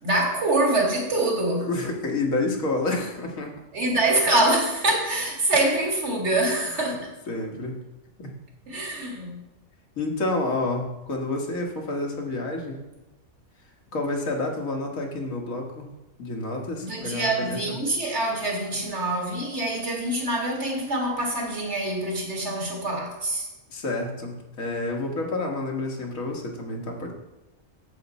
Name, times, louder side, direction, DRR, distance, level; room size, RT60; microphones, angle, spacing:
voice 1, 0.0-1.7 3.7-7.1 8.7-9.4 16.8-23.5, right 2 dB, 55° right, 2.2 m, -25 dB
voice 2, 1.6-3.5 6.7-6.8 7.3-7.8 8.2-8.3 10.0-12.8 13.9-15.9 16.2-17.8 23.7-27.1, left 2 dB, 90° left, 1.8 m, -29 dB
9.1 x 7.2 x 4.1 m
omnidirectional pair, 1.4 m